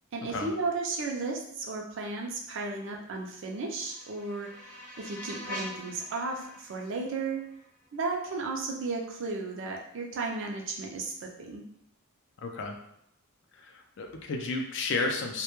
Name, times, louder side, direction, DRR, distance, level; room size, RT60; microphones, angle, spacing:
voice 1, 0.1-7.4 7.9-11.6, right 3 dB, 55° right, 1 dB, 0.4 m, -34 dB
sound 1, 3.2-8.2, equal, 5° left, 0.5 m, -45 dB
voice 2, 12.4-12.8 13.6-15.4, left 3 dB, 55° left, 3 dB, 0.4 m, -32 dB
2.1 x 2.1 x 2.9 m, 0.73 s
head